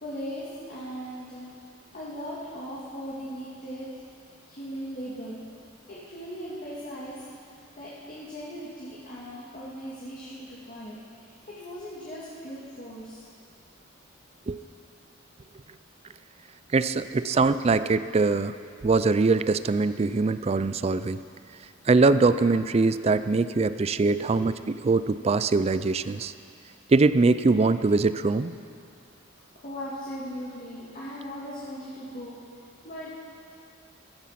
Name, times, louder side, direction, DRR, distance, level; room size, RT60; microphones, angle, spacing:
voice 1, 0.0-1.5 1.9-3.9 4.5-5.4 5.9-7.2 7.8-13.2 17.0-17.5 24.0-24.4 29.6-32.4 32.8-33.2, equal, 40° left, -8 dB, 2.3 m, -38 dB
voice 2, 16.7-18.5 18.8-21.2 21.9-26.3 26.9-28.5, right 3 dB, 30° right, 13 dB, 0.4 m, -22 dB
15.5 x 14.0 x 5.8 m, 2.4 s
head